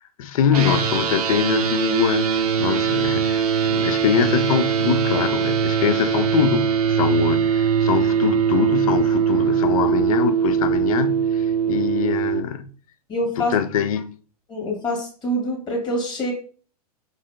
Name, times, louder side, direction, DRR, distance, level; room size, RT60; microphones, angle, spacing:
voice 1, 0.2-12.7 13.4-14.1, left 8 dB, 65° left, 0.5 m, -23 dB
sound 1, 0.5-12.4, right 7 dB, 70° right, 0.6 m, -21 dB
voice 2, 13.1-13.5 14.5-16.3, equal, 20° left, 1.4 m, -25 dB
4.8 x 2.6 x 2.2 m
hypercardioid pair, 105°, 20 cm